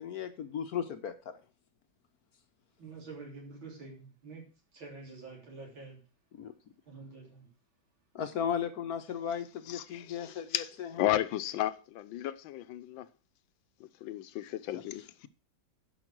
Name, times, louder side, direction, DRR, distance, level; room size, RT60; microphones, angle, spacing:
voice 1, 0.0-1.4 6.3-6.5 8.1-11.1 14.7-14.8, left 8 dB, 60° left, 1.1 m, -36 dB
voice 2, 2.8-4.4 4.7-6.0 6.9-7.5, right 4 dB, 80° right, 4.3 m, -47 dB
voice 3, 9.7-13.1 13.8-15.3, left 13 dB, 80° left, 1.4 m, -34 dB
10.5 x 5.8 x 6.1 m
omnidirectional pair, 2.1 m